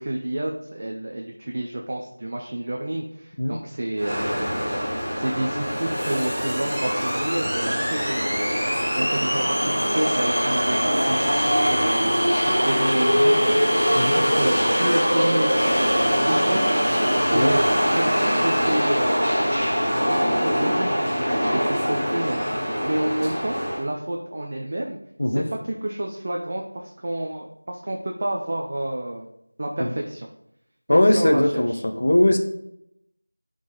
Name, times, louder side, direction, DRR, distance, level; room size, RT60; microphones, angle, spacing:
voice 1, 0.0-15.6 15.8-16.8 17.2-19.2 20.1-21.1 21.5-22.4 22.8-25.0 25.3-29.3 29.6-30.3 30.9-31.8, right 1 dB, 25° right, 0 dB, 0.5 m, -29 dB
sound 1, 4.0-23.8, equal, ahead, 1.2 m, -22 dB
voice 2, 30.9-32.4, left 1 dB, 35° left, 5 dB, 0.8 m, -20 dB
10.0 x 3.9 x 3.9 m, 0.79 s
figure-of-eight pair, 180°, 0 cm